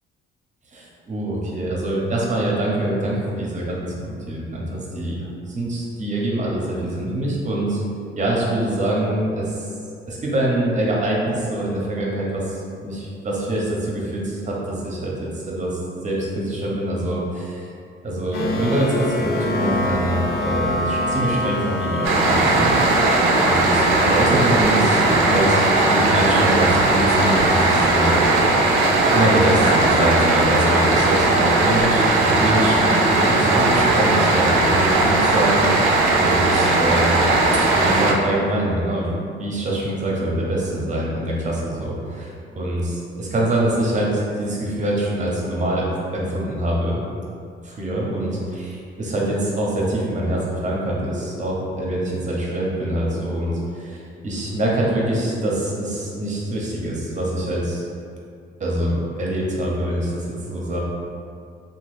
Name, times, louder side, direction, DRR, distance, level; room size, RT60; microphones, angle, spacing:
voice 1, 0.7-7.8 8.2-9.7 10.1-17.7 18.0-22.7 23.4-28.2 28.8-35.9 36.2-37.3 37.8-39.1 39.4-45.9 46.1-47.0 47.6-57.8 58.6-60.8, right 1 dB, 40° right, -3 dB, 0.8 m, -24 dB
sound 1, 18.3-28.4, left 1 dB, 50° left, 0.4 m, -27 dB
sound 2, 22.0-38.1, right 2 dB, 85° right, 0.4 m, -18 dB
2.9 x 2.4 x 3.2 m, 2.4 s
cardioid pair, 90°, 20 cm